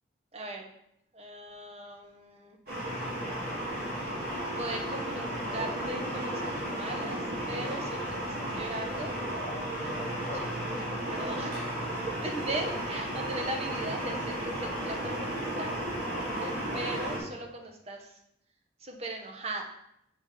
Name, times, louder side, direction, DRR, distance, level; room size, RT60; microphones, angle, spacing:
voice 1, 0.3-0.7 1.1-2.6 4.5-5.3 5.5-9.2 9.9-10.5 10.8-15.8 16.4-18.1 18.8-19.6, right 2 dB, 35° right, 2 dB, 0.8 m, -39 dB
sound 1, 2.7-17.2, right 1 dB, 55° right, 2.1 m, -34 dB
5.9 x 3.9 x 5.3 m, 0.78 s
head